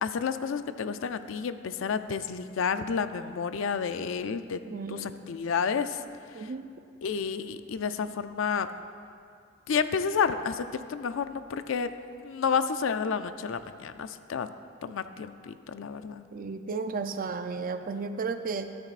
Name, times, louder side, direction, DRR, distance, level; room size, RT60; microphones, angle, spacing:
voice 1, 0.0-4.6 4.9-6.0 6.4-6.5 7.0-8.7 9.7-11.9 12.2-14.5 14.8-16.2, left 6 dB, 80° left, 11 dB, 0.4 m, -30 dB
voice 2, 4.7-5.3 6.3-6.7 16.3-18.8, right 4 dB, 45° right, 8 dB, 0.5 m, -34 dB
13.0 x 13.0 x 2.5 m, 2.4 s
head